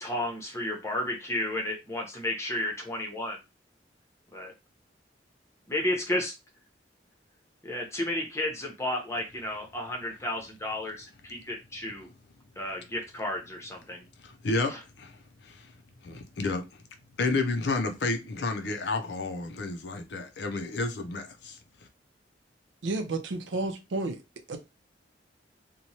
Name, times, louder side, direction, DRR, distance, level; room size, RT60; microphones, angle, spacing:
voice 1, 0.0-3.3 4.3-4.5 5.7-6.3 7.6-12.1 12.6-14.1 14.7-14.8, left 1 dB, 15° left, 0.7 m, -32 dB
voice 2, 14.2-15.2 15.4-15.7 16.0-16.7 17.2-21.6, left 3 dB, 65° left, 0.5 m, -31 dB
voice 3, 22.8-24.2 24.5-24.6, right 2 dB, 80° right, 0.5 m, -31 dB
3.0 x 2.2 x 2.7 m
head